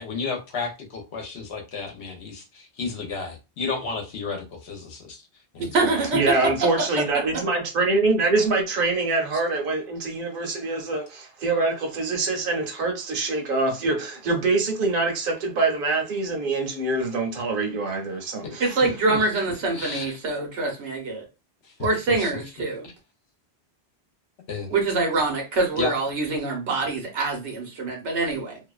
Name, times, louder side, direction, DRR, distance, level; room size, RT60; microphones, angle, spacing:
voice 1, 0.0-5.2 5.5-5.7 18.4-18.5 18.8-19.2 19.7-20.2 21.6-21.7 22.2-22.3 22.6-22.9 24.5-24.7 25.7-25.9, left 4 dB, 75° left, 1.0 m, -32 dB
voice 2, 5.6-6.7 18.6-21.3 21.8-22.9 24.7-28.6, right 3 dB, 85° right, 1.1 m, -25 dB
voice 3, 6.1-18.8, right 3 dB, 55° right, 0.9 m, -24 dB
2.7 x 2.1 x 2.3 m
omnidirectional pair, 1.1 m